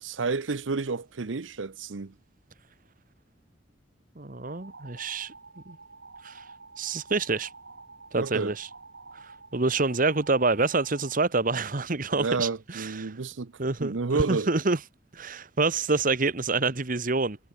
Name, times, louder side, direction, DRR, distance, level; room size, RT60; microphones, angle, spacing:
voice 1, 0.0-2.1 8.1-8.5 12.1-13.5 13.8-14.5, right 4 dB, 85° right, 0.8 m, -30 dB
voice 2, 4.2-5.3 5.7-5.8 6.2-6.4 6.8-7.5 8.1-8.7 9.5-13.1 13.6-14.8 15.1-17.4, right 3 dB, 45° right, 1.3 m, -27 dB
sound 1, 4.4-11.2, right 3 dB, 70° right, 6.3 m, -49 dB
head